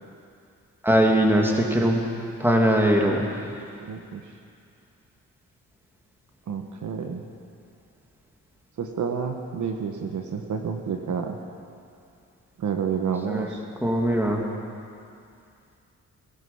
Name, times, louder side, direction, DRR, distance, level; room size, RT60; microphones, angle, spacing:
voice 1, 0.8-2.0 2.4-3.3 13.3-13.5 13.8-14.4, equal, 5° right, 0 dB, 2.7 m, -20 dB
voice 2, 3.8-4.4 6.5-7.3 8.8-11.4 12.6-13.6, right 6 dB, 65° right, 4 dB, 1.3 m, -30 dB
19.5 x 13.0 x 5.6 m, 2.5 s
cardioid pair, 70°, 32 cm